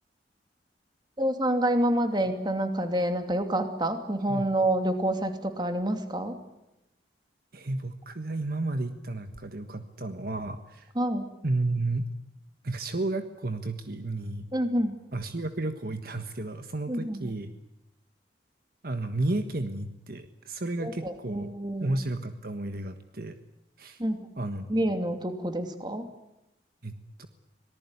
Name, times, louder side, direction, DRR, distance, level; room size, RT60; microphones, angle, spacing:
voice 1, 1.2-6.3 11.0-11.3 14.5-14.9 16.9-17.4 20.8-21.9 24.0-24.3 24.7-26.1, right 1 dB, 25° right, 7 dB, 2.7 m, -28 dB
voice 2, 7.5-10.9 11.4-12.1 12.6-14.4 15.1-17.5 18.8-21.5 21.8-23.4 23.8-24.0 24.4-24.8 26.8-26.9 27.2-27.3, right 2 dB, 55° right, 8 dB, 1.5 m, -32 dB
26.0 x 19.0 x 9.8 m, 0.91 s
head